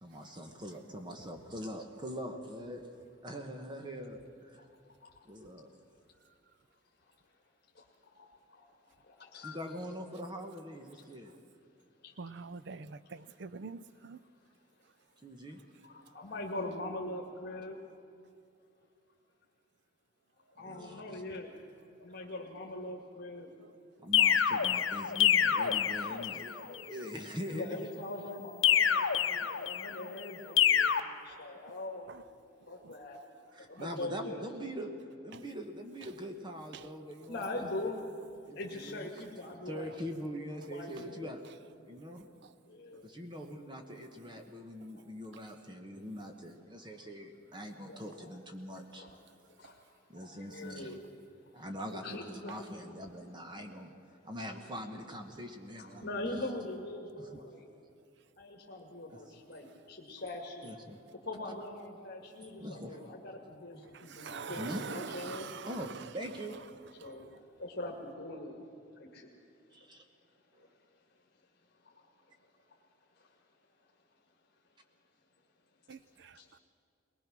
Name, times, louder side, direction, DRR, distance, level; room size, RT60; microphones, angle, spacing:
voice 1, 0.0-2.9 3.2-4.6 5.2-5.7 9.4-11.3 15.2-15.6 20.6-21.2 24.0-27.8 33.5-34.9 35.2-37.9 38.4-39.1 39.6-41.4 41.9-42.3 43.0-49.1 50.1-51.0 51.5-56.5 57.2-57.4 59.1-59.3 60.6-61.0 62.4-63.1 64.5-65.2 65.7-66.6 69.7-70.0 70.5-70.7, equal, 25° right, 1.2 m, -43 dB
voice 2, 7.7-9.7 12.0-12.5 13.1-13.5 13.9-14.0 15.8-17.8 20.5-21.5 22.0-23.5 27.5-32.3 32.7-33.2 33.6-34.5 37.3-38.0 38.5-40.0 40.5-41.4 42.7-43.1 47.8-48.3 49.0-49.2 49.6-51.0 51.5-51.6 52.0-52.5 55.8-57.7 58.4-60.7 61.3-65.5 67.0-69.4 70.6-70.7 71.8-72.1 72.4-72.8 73.2-73.3 75.9-76.0 76.3-76.6, left 2 dB, 55° left, 1.9 m, -43 dB
voice 3, 12.2-13.0 13.4-14.2 64.2-64.7 65.3-65.5 75.9-76.0, right 5 dB, 60° right, 0.5 m, -43 dB
sound 1, 24.1-26.5 28.6-30.0 30.6-31.0, left 9 dB, 75° left, 0.8 m, -27 dB
21.5 x 19.5 x 6.1 m
head